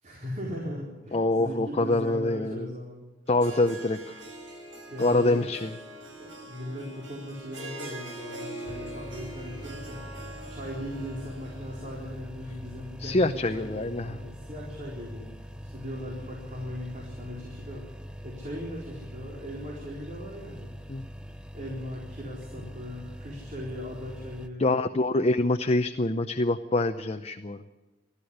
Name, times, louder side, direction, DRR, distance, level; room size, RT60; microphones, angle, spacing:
voice 1, 0.0-3.0 4.9-5.4 6.2-10.0 10.5-17.9 18.2-20.7 21.5-24.6, equal, 40° right, -2 dB, 4.1 m, -38 dB
voice 2, 1.1-2.7 3.3-4.2 5.0-5.7 13.0-14.2 20.9-21.0 24.6-27.6, left 2 dB, 35° left, 8 dB, 0.7 m, -25 dB
Harp, 3.3-12.3, right 1 dB, 85° right, 6.0 m, -43 dB
sound 1, 8.7-24.5, equal, 5° right, 0.9 m, -43 dB
20.0 x 14.0 x 10.0 m, 1.2 s
head